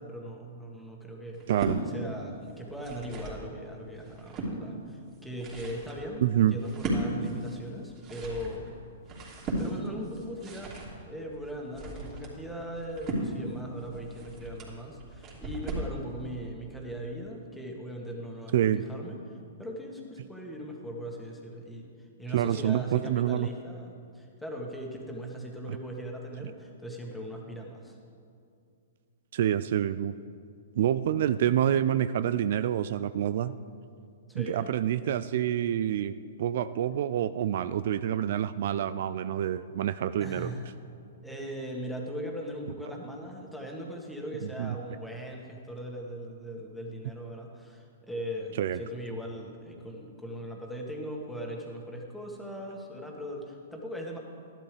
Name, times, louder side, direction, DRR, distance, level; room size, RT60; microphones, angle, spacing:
voice 1, 0.0-1.4 1.9-8.8 9.6-28.0 34.3-34.7 40.2-40.7 41.2-54.2, equal, ahead, -1 dB, 1.7 m, -39 dB
sound 1, 1.3-1.8 2.6-3.4 3.9-4.5 5.1-16.0, right 1 dB, 30° right, 3.0 m, -36 dB
voice 2, 1.5-1.8 6.2-6.6 18.5-18.8 22.3-23.5 29.3-30.1 30.8-33.5 34.3-36.1 36.4-40.5 44.6-44.8 48.6-48.8, right 10 dB, 60° right, 13 dB, 0.3 m, -27 dB
12.5 x 11.5 x 3.4 m, 2.4 s
hypercardioid pair, 125°, 0 cm